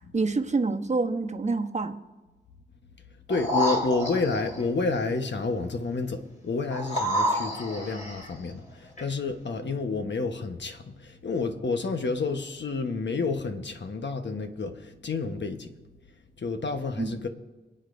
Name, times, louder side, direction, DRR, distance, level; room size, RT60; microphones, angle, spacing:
voice 1, 0.0-2.0 17.0-17.1, right 3 dB, 40° right, 1.0 m, -27 dB
voice 2, 3.3-15.7 16.4-17.3, left 3 dB, 75° left, 1.1 m, -30 dB
sound 1, 3.3-4.6 6.7-8.3 9.0-9.1, equal, 40° left, 3.7 m, -28 dB
26.5 x 8.9 x 2.6 m
wide cardioid pair, 65°, 19 cm